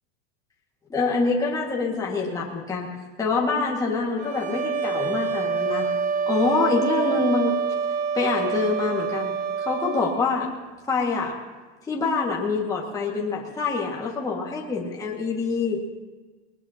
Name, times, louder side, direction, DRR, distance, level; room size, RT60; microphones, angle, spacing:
voice 1, 0.9-2.9 3.2-5.9 6.3-7.6 8.1-9.3 9.6-10.5 10.9-11.4 11.9-15.8, left 4 dB, 10° left, -3 dB, 1.9 m, -25 dB
sound 1, 4.2-10.2, right 6 dB, 65° right, 1.9 m, -26 dB
21.0 x 19.5 x 2.9 m, 1.3 s
supercardioid pair, 145°, 35 cm